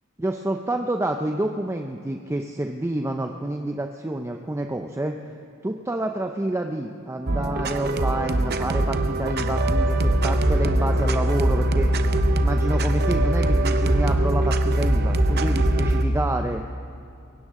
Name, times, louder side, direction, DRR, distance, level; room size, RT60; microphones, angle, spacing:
voice 1, 0.2-5.1 5.6-11.9 12.4-16.6, right 1 dB, 10° right, 4 dB, 0.5 m, -28 dB
sound 1, 7.3-16.0, right 2 dB, 45° right, 0.7 m, -25 dB
sound 2, 9.4-16.2, equal, 80° left, 2.0 m, -23 dB
22.5 x 17.0 x 3.7 m, 2.6 s
head